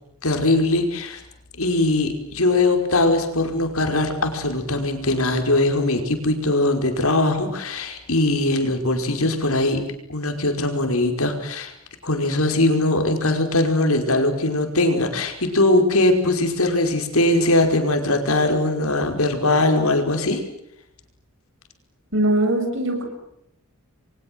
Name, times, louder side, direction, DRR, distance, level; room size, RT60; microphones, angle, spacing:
voice 1, 0.2-1.2 1.6-11.7 12.0-20.4, left 2 dB, 80° left, 5 dB, 5.3 m, -21 dB
voice 2, 22.1-23.0, right 1 dB, 60° right, 5 dB, 7.8 m, -21 dB
30.0 x 23.5 x 7.9 m, 0.77 s
head